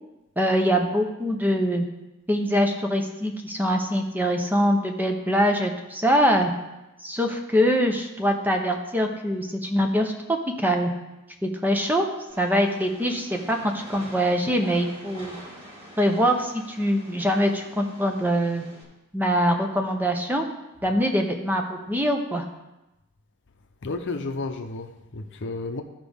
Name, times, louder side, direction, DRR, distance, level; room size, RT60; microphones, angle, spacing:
voice 1, 0.4-1.8 2.3-6.5 7.0-10.9 11.4-12.0 12.4-15.4 16.0-18.6 19.1-20.5 20.8-22.5, equal, 10° right, 0.7 m, -23 dB
Train, 12.3-18.8, right 1 dB, 30° right, 2.6 m, -46 dB
voice 2, 23.8-25.8, left 3 dB, 55° left, 0.7 m, -32 dB
14.0 x 5.1 x 3.5 m
head